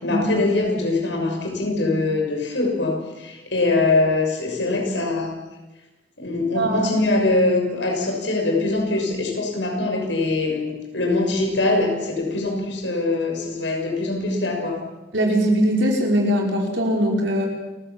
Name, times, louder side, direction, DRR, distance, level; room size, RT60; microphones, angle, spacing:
voice 1, 0.0-5.4 6.2-14.8, left 2 dB, 80° left, 2 dB, 6.5 m, -23 dB
voice 2, 6.5-6.9 15.1-17.5, equal, 85° right, 0 dB, 5.5 m, -21 dB
29.0 x 16.0 x 7.4 m, 1.1 s
head